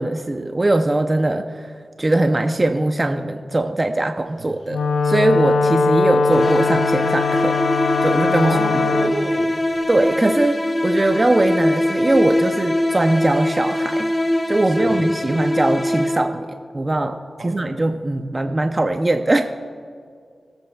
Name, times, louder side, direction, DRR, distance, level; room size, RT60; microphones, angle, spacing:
voice 1, 0.0-1.7 2.0-7.6 8.0-8.6 9.0-9.1 9.9-14.1 14.5-17.2 17.4-19.5, right 2 dB, 35° right, 6 dB, 0.6 m, -21 dB
Wind instrument woodwind instrument, 4.7-9.2, left 4 dB, 85° left, 0.5 m, -20 dB
sound 1, 6.3-16.5, left 1 dB, 25° left, 0.8 m, -22 dB
voice 2, 8.4-9.5 14.8-15.0 17.4-17.7, right 2 dB, 75° right, 3 dB, 1.5 m, -28 dB
22.5 x 8.1 x 2.3 m, 2.1 s
cardioid pair, 50°, 0 cm